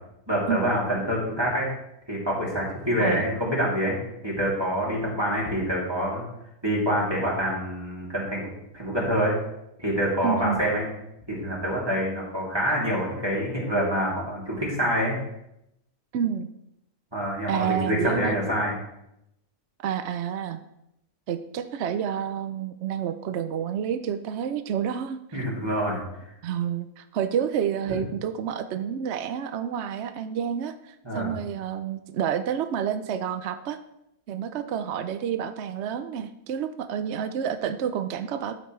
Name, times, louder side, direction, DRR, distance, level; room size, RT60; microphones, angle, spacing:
voice 1, 0.3-1.7 2.1-4.0 4.2-6.2 6.6-8.5 8.7-9.3 9.8-10.9 11.3-15.2 17.1-18.8 25.3-26.0 27.9-28.0 31.0-31.3, equal, 15° right, -5 dB, 2.9 m, -26 dB
voice 2, 10.2-10.6 16.1-16.5 17.5-18.4 19.8-20.6 21.3-25.4 26.4-33.8 34.3-38.6, right 8 dB, 65° right, 9 dB, 0.7 m, -29 dB
13.5 x 7.9 x 3.2 m, 0.83 s
omnidirectional pair, 1.6 m